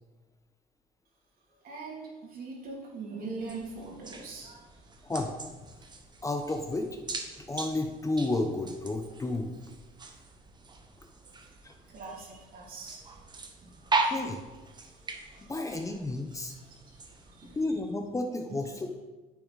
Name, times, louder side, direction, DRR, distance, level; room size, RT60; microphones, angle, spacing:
voice 1, 1.6-5.1 11.2-11.5 11.9-13.2 13.6-13.9 14.8-15.5 16.4-17.6, right 3 dB, 60° right, -3 dB, 2.8 m, -43 dB
sound 1, 3.4-17.7, right 3 dB, 25° right, 1.0 m, -39 dB
voice 2, 5.0-5.3 6.2-6.9 7.5-9.6 11.6-11.7 14.1-14.4 15.4-16.5 17.5-19.0, left 2 dB, 20° left, 4 dB, 0.8 m, -32 dB
9.2 x 6.9 x 4.1 m, 1.2 s
cardioid pair, 110°, 17 cm